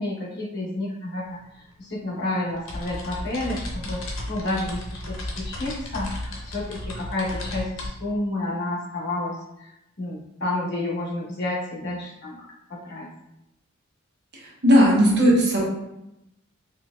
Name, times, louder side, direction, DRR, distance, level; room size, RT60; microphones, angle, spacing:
voice 1, 0.0-4.0 4.3-13.1, left 2 dB, 55° left, -5 dB, 1.0 m, -30 dB
sound 1, 1.3-1.4 1.6-7.9, left 1 dB, 80° left, 0.8 m, -34 dB
voice 2, 14.3-15.6, equal, 55° right, -4 dB, 1.1 m, -17 dB
4.2 x 2.8 x 2.4 m, 0.88 s
head